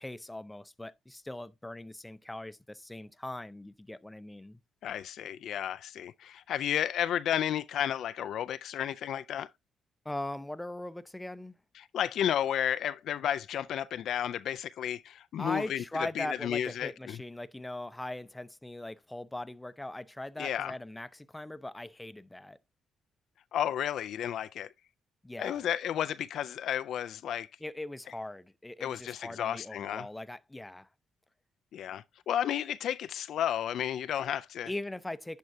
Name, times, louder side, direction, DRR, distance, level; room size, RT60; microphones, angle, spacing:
voice 1, 0.0-4.6 10.0-11.6 15.4-22.6 25.2-25.6 27.6-30.9 34.7-35.4, left 1 dB, 10° left, 0.5 m, -40 dB
voice 2, 4.8-9.5 11.8-17.2 20.4-20.7 23.5-24.7 25.4-27.5 28.8-30.1 31.7-34.7, left 10 dB, 70° left, 0.3 m, -32 dB
11.0 x 4.5 x 2.7 m
cardioid pair, 90°, 0 cm